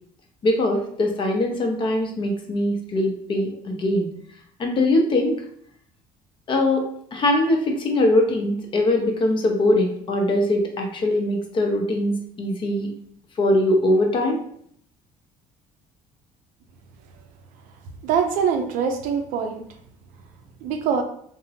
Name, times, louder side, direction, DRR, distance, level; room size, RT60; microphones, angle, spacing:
voice 1, 0.4-4.1 4.6-5.4 6.5-6.9 7.1-12.9 13.4-14.4, left 1 dB, 35° left, 2 dB, 0.6 m, -21 dB
voice 2, 18.0-19.6 20.6-21.0, right 6 dB, 75° right, 5 dB, 0.5 m, -23 dB
3.5 x 2.0 x 2.8 m, 0.65 s
cardioid pair, 125°, 14 cm